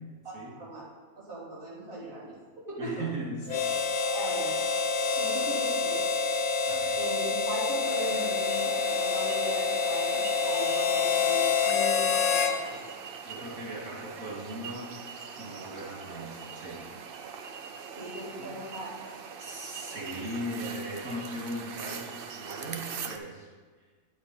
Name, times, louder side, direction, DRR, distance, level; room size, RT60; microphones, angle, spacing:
voice 1, 0.2-0.8 1.2-3.1 4.1-4.5 5.1-6.0 6.9-12.8 18.0-18.9, right 2 dB, 40° right, -10 dB, 3.2 m, -39 dB
voice 2, 2.8-3.7 4.5-4.6 6.7-7.0 13.2-14.9 15.4-16.8 18.4-18.5 19.4-23.5, right 1 dB, 80° right, -4 dB, 2.9 m, -38 dB
Harmonica, 3.5-12.6, left 5 dB, 80° left, 1.3 m, -27 dB
sound 1, 7.8-23.2, right 6 dB, 55° right, 0.6 m, -42 dB
9.9 x 7.2 x 4.3 m, 1.4 s
omnidirectional pair, 1.5 m